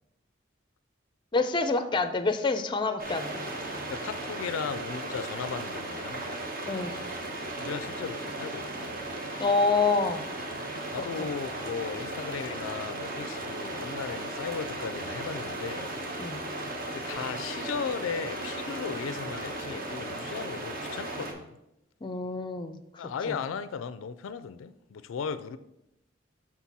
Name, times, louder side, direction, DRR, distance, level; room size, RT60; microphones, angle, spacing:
voice 1, 1.3-3.4 6.7-6.9 9.4-10.2 11.2-11.3 16.2-16.4 22.0-23.4, left 3 dB, 25° left, 0.4 m, -27 dB
sound 1, 3.0-21.3, right 2 dB, 45° right, 1.0 m, -36 dB
voice 2, 3.9-6.3 7.6-8.9 10.9-15.9 16.9-21.6 23.0-25.6, left 6 dB, 85° left, 0.4 m, -36 dB
6.0 x 4.2 x 5.9 m
head